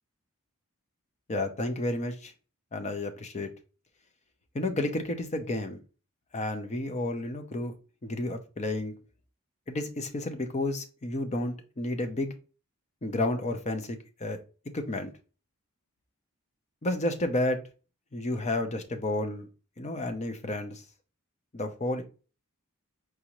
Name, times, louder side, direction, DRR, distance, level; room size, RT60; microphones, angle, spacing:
voice 1, 1.3-2.3 2.7-3.5 4.5-5.8 6.3-7.7 8.0-8.9 9.7-12.3 13.0-14.4 14.7-15.1 16.8-17.6 18.1-19.5 19.8-20.8 21.5-22.0, left 1 dB, 30° left, 7 dB, 0.6 m, -31 dB
4.8 x 2.6 x 3.0 m, 0.34 s
head